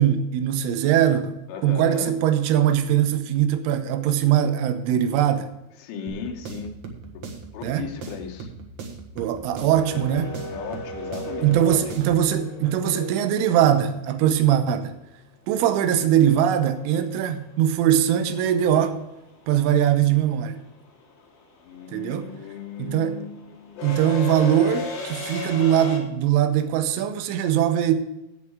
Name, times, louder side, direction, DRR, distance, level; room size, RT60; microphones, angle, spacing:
voice 1, 0.0-1.4 1.6-5.5 7.6-7.9 9.2-10.3 11.4-14.9 15.5-19.0 19.5-20.6 21.9-22.3 22.8-23.2 23.8-28.0, right 10 dB, 85° right, 3.5 m, -21 dB
voice 2, 1.5-2.2 5.8-6.8 7.1-7.2 7.5-8.5 10.5-11.8 21.6-24.0, left 7 dB, 80° left, 3.8 m, -36 dB
sound 1, 6.1-12.3, right 4 dB, 70° right, 1.7 m, -39 dB
sound 2, 9.8-13.8 16.2-16.3 17.6-17.9 18.2-26.0, left 2 dB, 65° left, 5.0 m, -35 dB
17.0 x 5.8 x 4.8 m
omnidirectional pair, 5.5 m